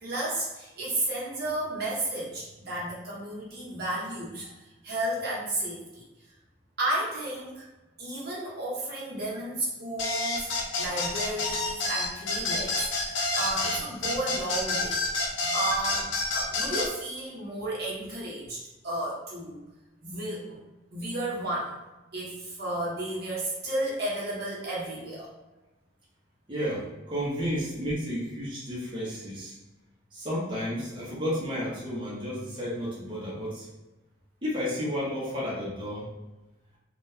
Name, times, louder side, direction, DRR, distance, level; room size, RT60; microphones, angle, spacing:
voice 1, 0.0-4.5 4.8-6.0 6.8-7.7 8.0-10.5 10.8-19.6 20.0-20.6 20.9-21.8 22.1-25.3, right 1 dB, 55° right, -5 dB, 1.0 m, -33 dB
sound 1, 10.0-16.9, left 3 dB, 90° left, 0.7 m, -28 dB
voice 2, 26.5-29.6 30.1-33.7 34.4-36.1, equal, 25° right, -7 dB, 0.9 m, -32 dB
3.8 x 2.4 x 2.7 m, 1.1 s
head